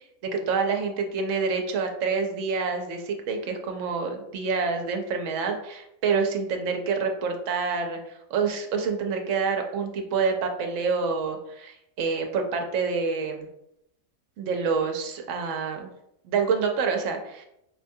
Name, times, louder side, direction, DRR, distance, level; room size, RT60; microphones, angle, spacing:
voice 1, 0.2-13.5 14.4-15.9 16.2-17.4, right 5 dB, 65° right, 4 dB, 0.9 m, -27 dB
4.9 x 2.2 x 2.6 m, 0.80 s
omnidirectional pair, 1.5 m